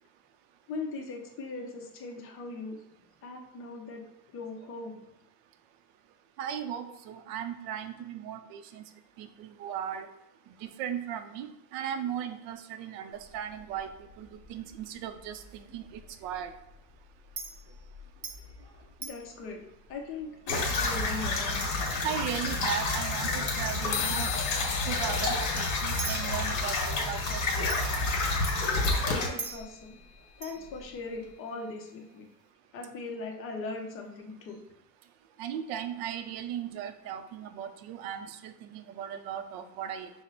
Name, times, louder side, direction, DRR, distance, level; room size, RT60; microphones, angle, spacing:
voice 1, 0.7-2.8 3.2-4.0 4.3-5.0 19.0-19.6 19.9-21.6 29.2-30.0 30.4-32.3 32.7-34.6, left 3 dB, 35° left, 2 dB, 0.7 m, -39 dB
voice 2, 6.4-8.8 9.2-10.1 10.6-13.9 14.2-16.5 22.0-24.3 24.9-27.4 35.4-40.1, right 9 dB, 65° right, 9 dB, 0.5 m, -37 dB
Chink clink, 13.1-31.3, right 3 dB, 25° right, 0.7 m, -47 dB
sound 1, 20.5-29.3, left 2 dB, 50° left, 1.4 m, -29 dB
sound 2, 23.9-31.6, left 12 dB, 70° left, 0.5 m, -41 dB
5.8 x 2.1 x 3.9 m, 0.85 s
cardioid pair, 170°, 39 cm